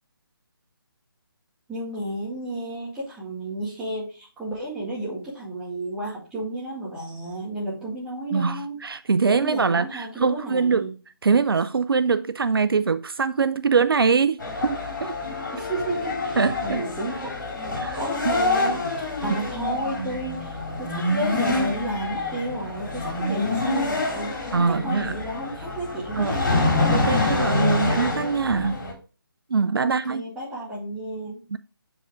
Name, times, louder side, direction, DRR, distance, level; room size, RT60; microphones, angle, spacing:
voice 1, 1.7-8.8 9.2-10.9 15.5-17.3 18.0-24.3 24.7-26.7 27.0-27.7 29.8-31.4, right 1 dB, 5° right, 2.0 m, -32 dB
voice 2, 8.3-10.9 11.2-15.1 16.4-16.8 17.8-18.0 18.2-18.4 19.3-19.4 24.5-25.1 26.2-26.4 26.9-28.8 29.5-30.2 31.5-31.6, right 5 dB, 75° right, 0.4 m, -23 dB
sound 1, 14.4-28.9, left 2 dB, 55° left, 2.7 m, -26 dB
6.3 x 4.8 x 3.6 m
figure-of-eight pair, 155°, 12 cm